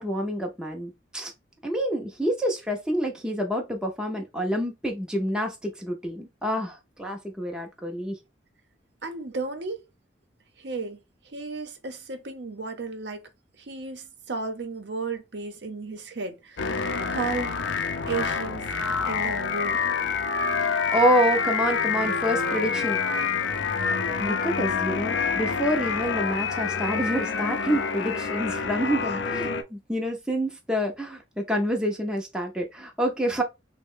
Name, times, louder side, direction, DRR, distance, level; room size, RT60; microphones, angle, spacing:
voice 1, 0.0-1.3 1.6-8.2 20.7-23.0 24.2-33.4, equal, 5° right, 0.5 m, -27 dB
voice 2, 9.0-9.8 10.6-11.0 11.3-13.2 13.7-17.6 18.1-18.7 19.1-19.8, right 4 dB, 65° right, 0.7 m, -33 dB
sound 1, 16.6-29.6, left 5 dB, 80° left, 0.5 m, -27 dB
3.4 x 2.1 x 3.6 m
head